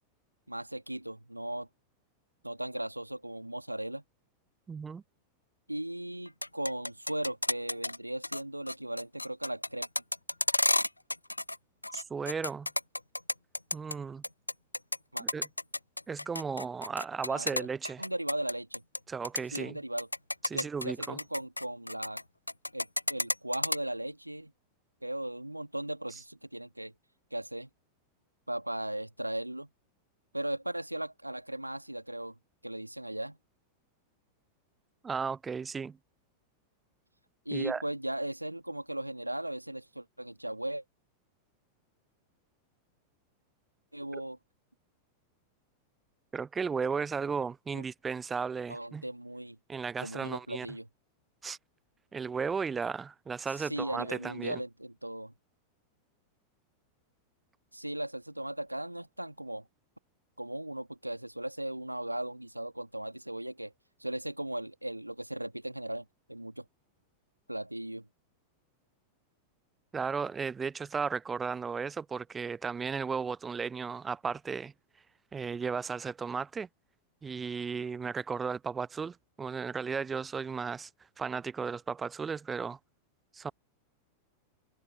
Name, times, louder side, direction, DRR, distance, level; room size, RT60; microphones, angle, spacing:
voice 1, 0.5-1.7 2.4-4.0 5.7-9.9 15.1-15.3 17.3-17.7 18.0-18.8 19.5-20.1 20.5-22.2 22.7-24.5 25.0-26.9 27.3-27.7 28.5-29.7 30.3-32.4 32.6-33.4 37.5-40.8 43.9-44.4 47.7-47.8 48.7-49.6 50.0-50.9 53.5-55.3 57.7-59.7 60.4-63.7 64.0-66.6 67.5-68.1, right 1 dB, 85° right, 2.0 m, -37 dB
voice 2, 4.7-5.0 11.9-12.7 13.7-14.2 15.2-15.5 16.1-18.0 19.1-19.8 20.4-21.2 35.0-36.0 37.5-37.8 46.3-49.0 49.7-50.7 51.4-51.6 52.1-54.6 69.9-74.7 75.3-76.7 77.2-80.9 81.2-82.8 83.3-83.5, right 5 dB, 15° right, 0.4 m, -35 dB
sound 1, 6.3-8.0 8.2-8.4 8.7-11.6 11.8-13.9 14.2-19.0 19.2-19.6 20.0-22.2 22.5-23.8, left 1 dB, 85° left, 0.3 m, -31 dB
figure-of-eight pair, 90°, 0 cm